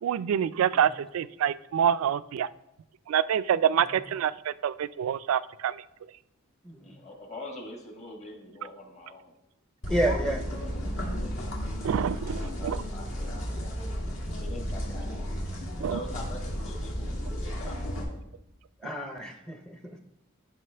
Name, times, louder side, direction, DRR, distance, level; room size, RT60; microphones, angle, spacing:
voice 1, 0.0-2.5 3.1-5.7 11.8-12.8 15.8-16.0, right 9 dB, 75° right, 16 dB, 0.3 m, -26 dB
voice 2, 6.8-9.3 11.0-11.5 11.9-13.5 14.3-15.5 15.8-18.2, left 2 dB, 30° left, 2 dB, 1.3 m, -44 dB
sound 1, 9.8-18.0, equal, 65° left, 2.0 m, -33 dB
voice 3, 9.9-10.4 18.8-20.0, right 1 dB, 5° left, 4 dB, 0.5 m, -30 dB
11.0 x 5.6 x 3.3 m, 0.88 s
head